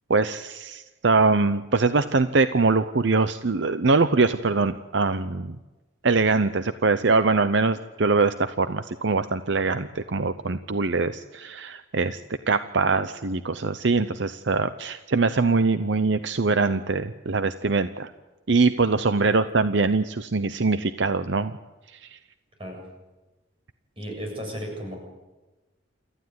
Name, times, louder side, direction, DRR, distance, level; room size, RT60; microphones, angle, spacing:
voice 1, 0.1-5.6 6.0-12.2 12.5-18.1 18.5-21.5 22.1-22.2, right 3 dB, 65° right, 12 dB, 0.7 m, -23 dB
voice 2, 24.0-25.0, equal, 25° right, 1 dB, 7.6 m, -35 dB
28.5 x 14.5 x 9.6 m, 1.1 s
head